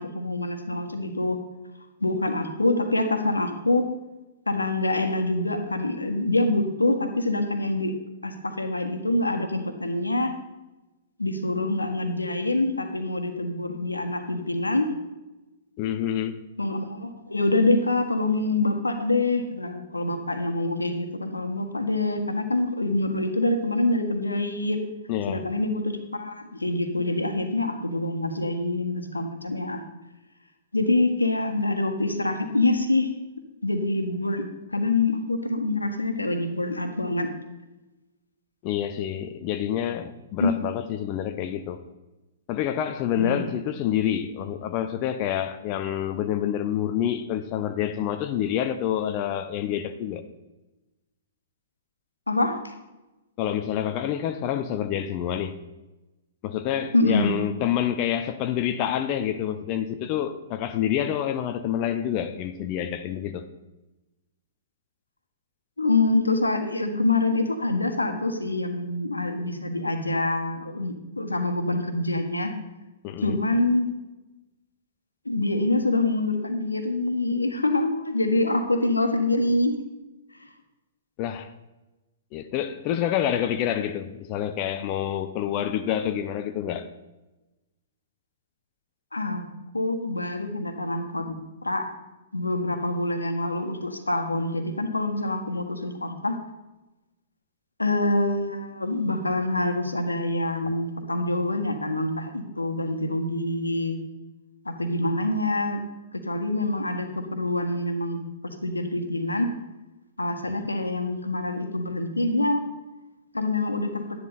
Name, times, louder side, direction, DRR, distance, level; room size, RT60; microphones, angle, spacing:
voice 1, 0.0-1.4 2.0-3.9 4.5-7.9 8.2-10.3 11.2-14.9 16.6-24.8 25.3-29.8 30.7-33.1 33.6-34.4 34.7-37.3 40.4-40.5 43.2-43.4 52.3-52.7 56.9-57.3 65.8-72.5 73.2-73.9 75.2-79.8 80.4-80.5 89.1-89.4 89.7-91.9 92.3-96.4 97.8-104.0 104.6-105.8 106.2-109.5 110.2-112.6 113.3-114.0, left 2 dB, 85° left, 1.6 m, -25 dB
voice 2, 15.8-16.4 25.1-25.5 38.6-41.8 42.5-50.2 53.4-55.6 56.4-63.5 73.0-73.4 81.2-81.5 82.3-86.9, left 10 dB, 35° left, 0.7 m, -27 dB
12.0 x 10.5 x 4.1 m
figure-of-eight pair, 115°, 0 cm